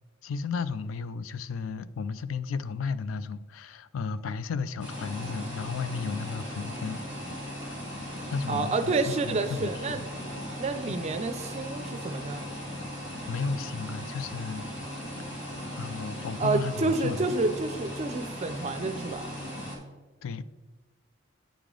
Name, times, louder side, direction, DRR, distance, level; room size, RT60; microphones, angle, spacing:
voice 1, 0.2-7.0 8.3-10.1 10.9-11.0 13.3-14.7 15.8-17.3 20.2-20.4, left 5 dB, 80° left, 0.4 m, -34 dB
sound 1, 4.8-19.8, equal, 65° left, 2.1 m, -38 dB
voice 2, 8.5-10.0 10.6-12.4 16.4-19.4, right 3 dB, 35° right, 0.4 m, -29 dB
8.9 x 5.0 x 3.7 m
head